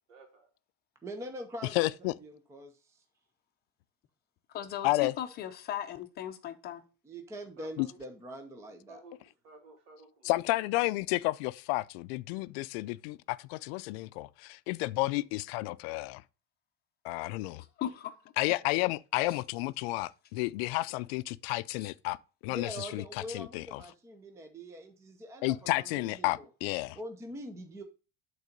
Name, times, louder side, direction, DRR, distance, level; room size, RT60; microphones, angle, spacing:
voice 1, 0.1-0.5 7.6-8.0 8.9-9.2 9.4-10.6, right 3 dB, 60° right, 3.0 m, -54 dB
voice 2, 1.0-3.0 7.0-9.0 22.5-26.5 26.9-27.8, equal, 10° right, 0.6 m, -44 dB
voice 3, 1.8-2.1 4.8-5.1 7.8-7.9 10.2-16.2 17.0-17.6 18.4-22.2 22.4-23.0 23.3-23.8 25.4-27.0, left 20 dB, 80° left, 0.5 m, -31 dB
voice 4, 4.5-6.8 17.6-18.1 19.3-19.4 21.8-21.9, left 11 dB, 30° left, 0.7 m, -38 dB
8.2 x 4.0 x 5.2 m
cardioid pair, 170°, 31 cm